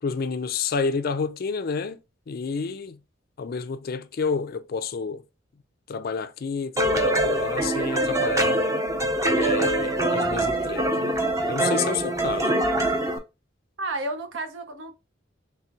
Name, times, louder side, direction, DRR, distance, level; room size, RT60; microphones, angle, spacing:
voice 1, 0.0-2.0 2.3-3.0 3.4-5.2 5.9-8.6 9.3-11.2 11.5-12.5, left 5 dB, 50° left, 0.4 m, -29 dB
sound 1, 6.8-13.2, right 1 dB, 15° right, 0.6 m, -24 dB
voice 2, 13.8-14.9, right 2 dB, 70° right, 0.8 m, -31 dB
4.3 x 3.4 x 2.4 m
head